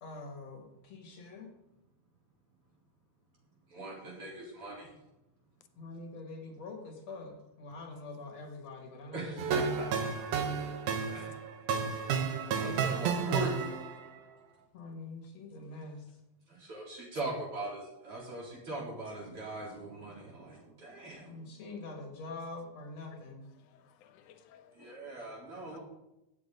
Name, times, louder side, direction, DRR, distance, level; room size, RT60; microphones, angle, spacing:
voice 1, 0.0-1.5 5.8-9.5 14.7-16.0 21.3-23.5, left 3 dB, 60° left, 2 dB, 3.1 m, -45 dB
voice 2, 3.7-4.9 9.1-9.9 11.1-11.3 12.0-12.2 12.5-13.7 16.5-21.4 24.7-25.8, right 2 dB, 45° right, -4 dB, 4.5 m, -40 dB
sound 1, 9.4-14.1, right 6 dB, 85° right, 2.5 m, -32 dB
voice 3, 23.6-25.2 25.5-25.8, left 9 dB, 85° left, 10 dB, 2.3 m, -59 dB
17.0 x 7.8 x 3.8 m, 0.90 s
omnidirectional pair, 3.4 m